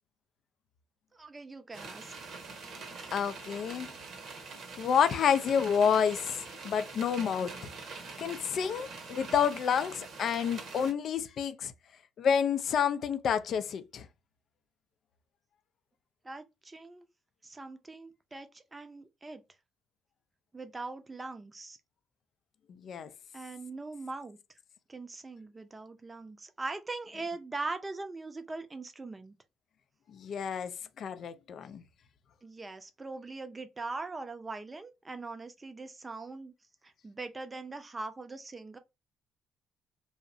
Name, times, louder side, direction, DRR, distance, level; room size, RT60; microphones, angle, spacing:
voice 1, 1.1-2.1 16.2-17.0 17.4-19.4 20.5-21.8 23.3-24.6 24.9-29.3 32.4-36.5 36.8-38.8, right 3 dB, 25° right, 0.5 m, -41 dB
sound 1, 1.7-10.9, right 4 dB, 60° right, 0.8 m, -44 dB
voice 2, 3.1-3.9 4.8-7.5 8.2-11.7 12.2-14.1 22.8-23.1 30.1-30.7 31.0-31.8, left 7 dB, 55° left, 0.3 m, -29 dB
2.6 x 2.0 x 2.5 m
hypercardioid pair, 50°, 0 cm